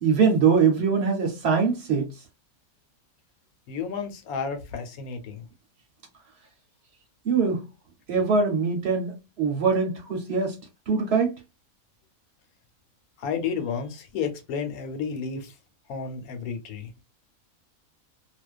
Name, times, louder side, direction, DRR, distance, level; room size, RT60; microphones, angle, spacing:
voice 1, 0.0-2.1 7.2-7.6 8.1-10.6 10.9-11.3, right 5 dB, 55° right, 0.9 m, -22 dB
voice 2, 3.7-5.4 13.2-15.5 15.9-16.9, left 6 dB, 90° left, 1.1 m, -31 dB
2.4 x 2.2 x 2.3 m
omnidirectional pair, 1.5 m